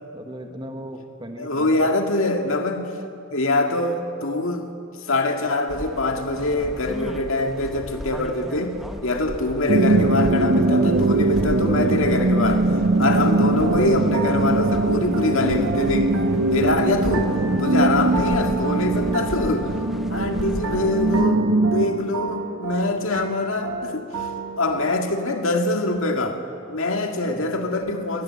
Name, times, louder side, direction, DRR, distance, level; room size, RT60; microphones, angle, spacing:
voice 1, 0.1-1.9 27.2-27.7, right 1 dB, 20° right, 4 dB, 1.8 m, -37 dB
voice 2, 1.4-2.9 3.3-4.7 5.1-8.7 9.0-16.1 16.5-17.3 17.6-19.7 20.1-24.3 24.6-26.4 26.7-28.2, left 2 dB, 65° left, 4 dB, 2.1 m, -24 dB
sound 1, 5.7-21.3, equal, ahead, 1.1 m, -36 dB
sound 2, 9.7-21.9, right 2 dB, 60° right, 1.0 m, -21 dB
sound 3, 12.9-25.0, right 3 dB, 80° right, 1.9 m, -31 dB
22.5 x 18.5 x 8.6 m, 2.5 s
head